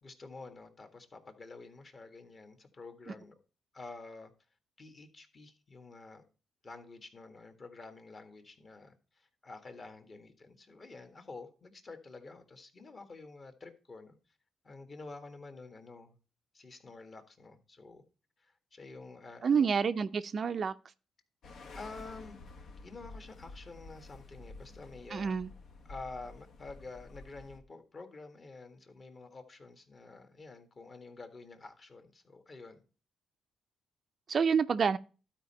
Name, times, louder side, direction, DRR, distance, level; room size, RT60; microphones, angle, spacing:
voice 1, 0.0-3.4 3.7-4.3 4.8-6.2 6.6-14.2 14.6-16.2 16.5-18.0 18.4-19.7 21.7-22.4 22.8-25.3 25.9-32.8, left 3 dB, 40° left, 1.7 m, -49 dB
voice 2, 19.4-20.7 25.1-25.5 34.3-35.0, right 6 dB, 45° right, 0.5 m, -28 dB
sound 1, 21.4-27.6, left 3 dB, 70° left, 1.2 m, -50 dB
12.0 x 4.5 x 4.2 m
cardioid pair, 90°, 0 cm